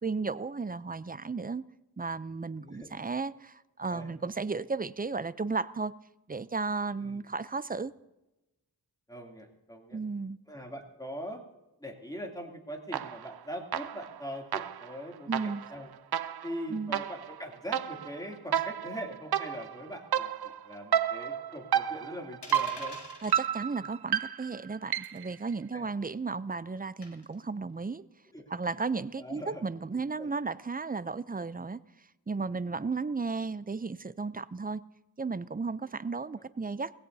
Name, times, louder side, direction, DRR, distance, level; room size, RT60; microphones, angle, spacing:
voice 1, 0.0-1.6 2.0-5.9 6.3-7.9 9.9-10.4 15.3-15.6 16.7-17.0 23.2-28.0 28.5-31.8 32.3-34.8 35.2-36.9, right 4 dB, 20° right, 0.5 m, -34 dB
voice 2, 2.6-3.1 3.9-4.1 7.0-7.2 9.1-10.0 10.5-11.4 11.8-15.9 16.4-23.0 25.7-25.9 28.3-28.6 29.2-29.6 29.9-30.3 36.3-36.4, equal, 10° left, 2.8 m, -42 dB
sound 1, 12.9-13.4 13.7-25.3, right 9 dB, 70° right, 0.5 m, -32 dB
sound 2, 22.4-23.4 25.0-25.3 27.0-27.3, left 3 dB, 85° left, 1.9 m, -44 dB
21.0 x 16.5 x 2.7 m
wide cardioid pair, 50°, 40 cm